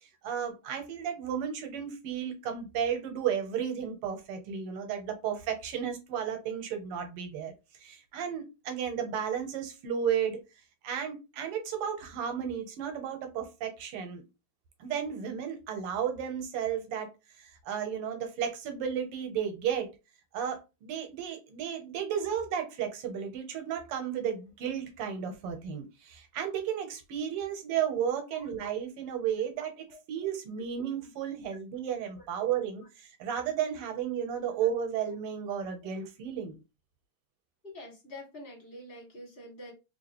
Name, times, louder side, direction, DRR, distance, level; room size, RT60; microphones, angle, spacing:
voice 1, 0.2-7.5 7.8-10.4 10.8-14.2 14.8-17.1 17.4-19.9 20.3-36.6, right 8 dB, 90° right, 1.7 m, -33 dB
voice 2, 37.6-39.7, left 1 dB, 30° left, 1.6 m, -46 dB
3.5 x 2.8 x 2.8 m
omnidirectional pair, 2.4 m